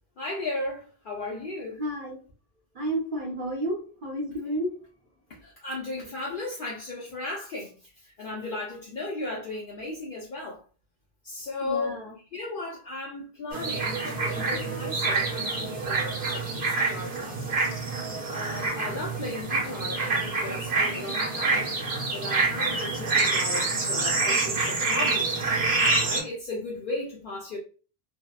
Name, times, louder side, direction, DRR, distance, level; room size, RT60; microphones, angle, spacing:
voice 1, 0.2-1.8 5.4-10.6 11.2-12.0 12.3-17.7 18.3-25.3 26.0-27.6, left 2 dB, 60° left, 0.7 m, -36 dB
voice 2, 1.8-2.2 2.7-4.7 11.6-12.1, right 1 dB, 55° right, 0.8 m, -31 dB
sound 1, 13.5-26.2, right 3 dB, 80° right, 1.2 m, -27 dB
2.8 x 2.1 x 2.2 m
omnidirectional pair, 1.0 m